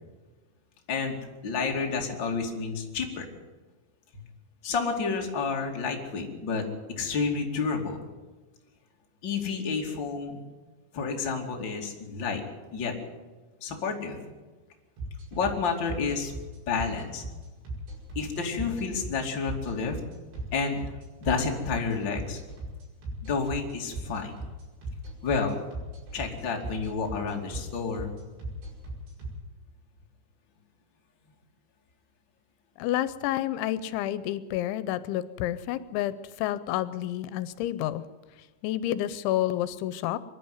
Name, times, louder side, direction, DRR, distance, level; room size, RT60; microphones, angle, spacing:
voice 1, 1.4-3.3 4.6-6.6 7.0-8.0 9.2-10.4 10.9-12.4 12.7-12.9 13.6-14.2 15.3-16.3 16.7-17.2 18.1-20.0 20.5-20.8 21.2-22.4 23.2-24.4 25.2-25.6 26.1-28.1, left 5 dB, 30° left, 1 dB, 2.6 m, -30 dB
sound 1, 15.0-29.3, right 2 dB, 65° right, 7.6 m, -37 dB
voice 2, 32.8-38.0 38.6-40.2, left 13 dB, 85° left, 15 dB, 3.1 m, -29 dB
24.0 x 11.5 x 9.5 m, 1.3 s
omnidirectional pair, 5.3 m